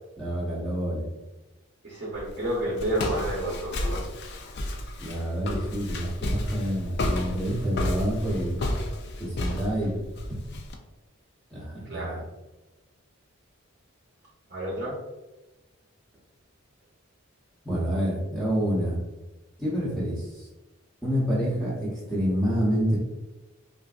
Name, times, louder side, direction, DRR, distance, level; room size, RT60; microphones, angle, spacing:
voice 1, 0.2-1.0 5.0-8.6 9.2-9.9 11.5-12.2 17.6-19.0 19.6-20.5 21.0-23.0, equal, ahead, -8 dB, 0.8 m, -28 dB
voice 2, 1.8-4.0 11.9-12.2 14.5-15.0, right 1 dB, 40° right, -5 dB, 0.7 m, -30 dB
Walk footsteps, 2.1-10.7, left 1 dB, 50° left, 0.4 m, -32 dB
3.3 x 2.5 x 2.4 m, 1.1 s
head